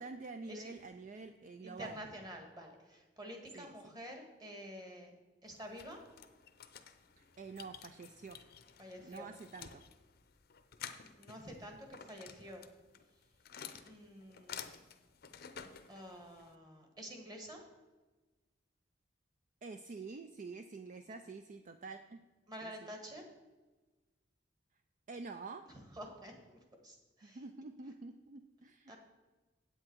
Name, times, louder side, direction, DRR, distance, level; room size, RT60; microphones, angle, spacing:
voice 1, 0.0-2.1 3.5-3.9 7.2-8.4 9.0-9.8 19.6-22.2 22.6-22.9 25.1-25.6 27.2-28.9, right 4 dB, 45° right, 8 dB, 0.4 m, -48 dB
voice 2, 1.6-5.1 5.4-6.0 8.8-9.3 11.2-12.6 13.8-14.8 15.9-17.6 22.5-23.3 25.7-27.4 28.9-29.0, equal, 20° right, 2 dB, 1.6 m, -49 dB
sound 1, 5.5-16.5, left 7 dB, 55° left, 0.6 m, -52 dB
8.6 x 8.0 x 4.5 m, 1.2 s
head